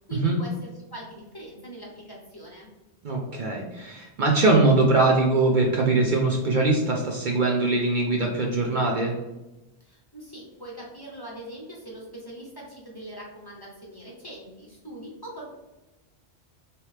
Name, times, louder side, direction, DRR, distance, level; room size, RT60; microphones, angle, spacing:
voice 1, 0.1-2.7 9.8-15.5, right 1 dB, 25° left, -4 dB, 0.7 m, -42 dB
voice 2, 3.0-9.2, right 2 dB, 60° right, 0 dB, 0.6 m, -22 dB
3.2 x 2.8 x 3.2 m, 1.0 s
omnidirectional pair, 1.1 m